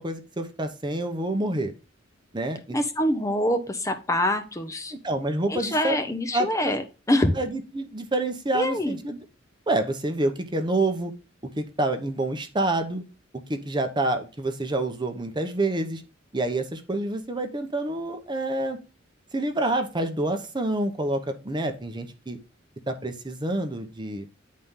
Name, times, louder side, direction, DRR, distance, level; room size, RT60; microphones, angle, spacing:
voice 1, 0.0-1.7 2.3-2.8 4.9-6.0 6.3-6.7 7.4-9.2 9.7-11.1 11.6-13.0 13.3-16.0 16.3-18.8 19.3-22.4 22.9-24.3, right 2 dB, 25° right, 6 dB, 0.8 m, -27 dB
voice 2, 2.7-4.9 5.5-7.3 8.5-9.0, left 1 dB, 15° left, 7 dB, 0.7 m, -25 dB
9.4 x 4.2 x 3.6 m, 0.31 s
head